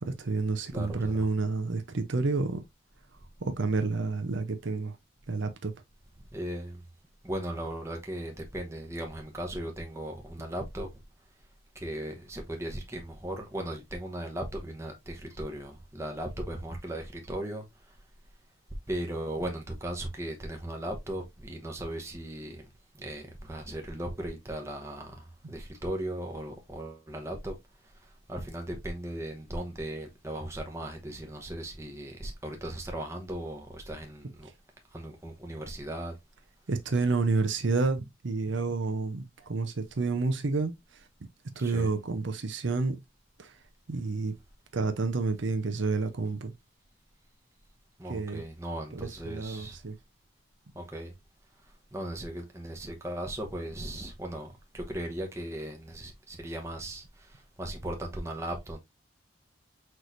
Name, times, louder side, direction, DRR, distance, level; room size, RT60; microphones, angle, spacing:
voice 1, 0.0-2.6 3.4-5.0 5.3-5.7 34.4-34.5 36.7-41.1 41.6-43.0 43.4-43.6 43.9-44.4 44.7-46.5 48.1-48.4 48.9-50.0, right 3 dB, 65° right, 0.6 m, -29 dB
voice 2, 0.7-1.2 6.3-6.8 7.2-10.9 11.7-17.9 18.9-22.6 22.9-27.5 28.0-34.5 34.9-36.2 41.6-41.9 48.0-49.8 50.7-51.1 51.9-58.8, right 1 dB, 15° right, 0.9 m, -37 dB
6.1 x 3.1 x 2.5 m
head